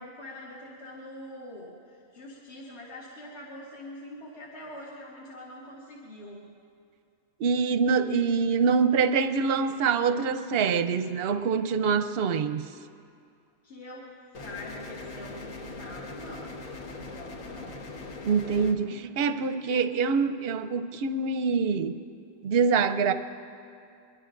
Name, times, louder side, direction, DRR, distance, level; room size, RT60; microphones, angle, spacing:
voice 1, 0.0-6.5 8.0-8.5 13.6-17.9, left 1 dB, 50° left, -6 dB, 2.3 m, -44 dB
voice 2, 7.4-12.7 18.2-22.0 22.4-23.1, right 5 dB, 55° right, 10 dB, 0.8 m, -25 dB
sound 1, 14.3-18.7, left 3 dB, 75° left, 1.7 m, -41 dB
24.5 x 22.5 x 2.5 m, 2.4 s
omnidirectional pair, 1.4 m